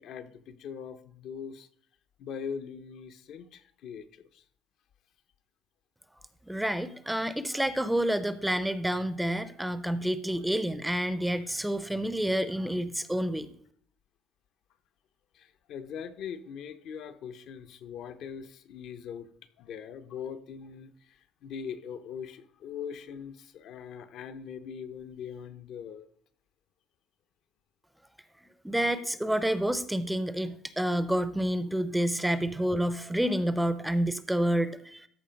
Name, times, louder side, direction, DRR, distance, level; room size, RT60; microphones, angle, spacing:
voice 1, 0.0-1.7 2.2-4.4 15.3-19.3 19.6-26.1, left 7 dB, 60° left, 10 dB, 0.7 m, -41 dB
voice 2, 6.5-13.5 28.6-35.1, right 1 dB, 5° right, 14 dB, 0.5 m, -29 dB
13.0 x 4.5 x 5.2 m, 0.63 s
cardioid pair, 125°, 0 cm